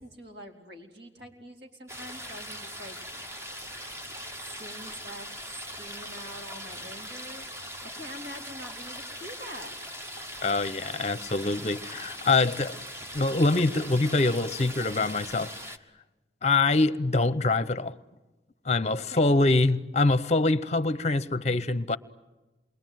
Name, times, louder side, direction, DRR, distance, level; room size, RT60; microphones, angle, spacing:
voice 1, 0.0-3.0 4.4-7.5 7.8-9.8 19.0-19.4, equal, 70° right, 3.8 m, -45 dB
sound 1, 1.9-15.8, equal, 15° right, 1.3 m, -40 dB
voice 2, 10.4-12.8 13.1-15.5 16.4-17.9 18.7-22.0, left 3 dB, 40° left, 0.8 m, -24 dB
28.0 x 22.5 x 9.3 m
head